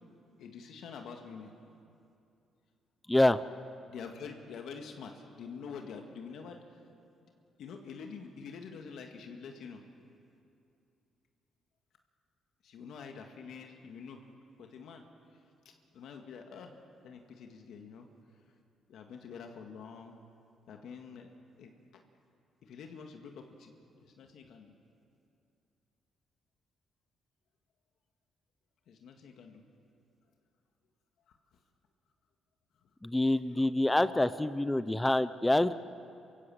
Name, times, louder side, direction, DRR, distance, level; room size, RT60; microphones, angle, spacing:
voice 1, 0.4-1.5 3.9-6.8 7.2-7.3 7.6-9.8 12.6-14.3 14.6-15.0 15.9-16.7 17.0-18.1 18.9-20.2 20.7-21.3 21.6-21.7 22.6-23.7 24.0-24.7 28.9-29.6 31.3-31.4 34.8-34.9, left 5 dB, 75° left, 3 dB, 1.8 m, -46 dB
voice 2, 3.1-3.4 33.0-35.7, left 1 dB, 10° left, 14 dB, 0.6 m, -26 dB
27.5 x 16.0 x 7.8 m, 2.6 s
cardioid pair, 90°, 0 cm